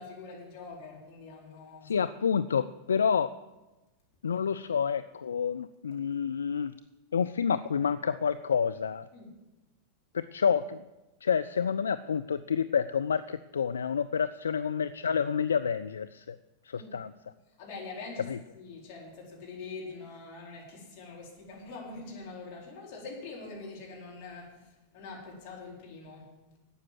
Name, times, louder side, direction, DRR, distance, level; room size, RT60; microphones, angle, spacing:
voice 1, 0.0-2.0 9.1-9.3 16.7-17.0 17.6-26.3, left 3 dB, 45° left, -3 dB, 4.6 m, -44 dB
voice 2, 1.8-3.3 4.2-6.7 7.1-9.1 10.1-10.9 11.2-16.4 16.6-17.1 18.3-18.4, left 7 dB, 70° left, 12 dB, 0.3 m, -29 dB
12.5 x 8.6 x 7.7 m, 1.1 s
figure-of-eight pair, 90°, 0 cm